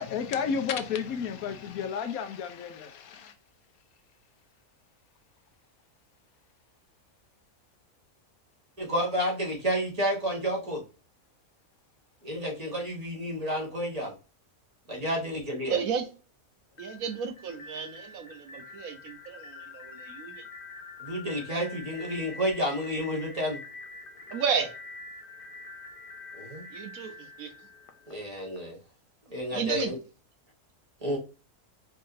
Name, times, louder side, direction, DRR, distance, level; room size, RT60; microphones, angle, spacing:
voice 1, 0.0-3.3, left 6 dB, 80° left, 1.1 m, -32 dB
voice 2, 8.8-10.8 12.2-14.1 14.9-15.8 21.0-23.6 26.3-26.6 28.1-28.8 29.3-30.0 31.0-31.2, equal, 30° right, 1.3 m, -30 dB
voice 3, 15.7-16.1 16.8-20.4 24.3-24.7 26.7-27.5 29.5-29.9, right 7 dB, 75° right, 1.2 m, -32 dB
sound 1, 16.7-28.6, left 3 dB, 55° left, 0.6 m, -46 dB
4.7 x 2.8 x 2.5 m
omnidirectional pair, 1.5 m